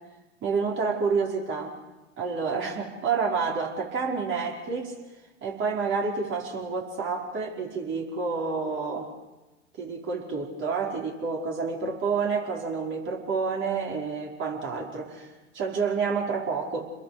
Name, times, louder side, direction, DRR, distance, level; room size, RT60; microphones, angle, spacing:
voice 1, 0.4-1.7 2.2-4.9 5.4-9.1 9.8-16.9, right 5 dB, 35° right, -1 dB, 5.4 m, -29 dB
30.0 x 22.0 x 5.2 m, 1.1 s
hypercardioid pair, 95°, 33 cm